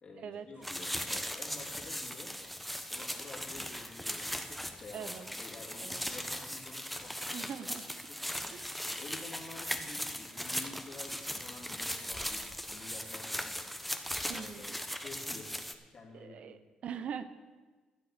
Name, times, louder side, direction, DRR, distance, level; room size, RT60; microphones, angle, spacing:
voice 1, 0.0-2.4 2.9-7.5 8.1-8.5 9.0-13.8 14.3-16.6, left 3 dB, 55° left, -3 dB, 3.2 m, -50 dB
sound 1, 0.6-15.7, equal, 5° left, 1.0 m, -39 dB
voice 2, 4.9-5.3 5.8-6.2 7.3-7.8 8.5-8.7 14.3-14.8 16.1-17.2, right 7 dB, 65° right, 11 dB, 0.8 m, -42 dB
12.5 x 7.8 x 6.7 m, 1.3 s
supercardioid pair, 65°, 2 cm